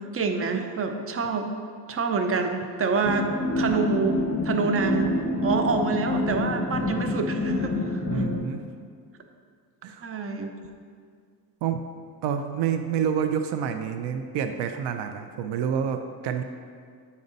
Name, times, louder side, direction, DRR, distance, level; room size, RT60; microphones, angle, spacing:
voice 1, 0.1-1.5 1.9-3.3 3.6-8.2 10.0-10.6, right 4 dB, 35° right, 5 dB, 0.7 m, -27 dB
sound 1, 3.0-8.4, left 2 dB, 30° left, 1.5 m, -27 dB
voice 2, 8.1-8.6 9.8-10.1 11.6-11.8 12.2-16.4, right 8 dB, 75° right, 7 dB, 0.6 m, -28 dB
8.5 x 5.3 x 4.0 m, 2.1 s
cardioid pair, 100°, 41 cm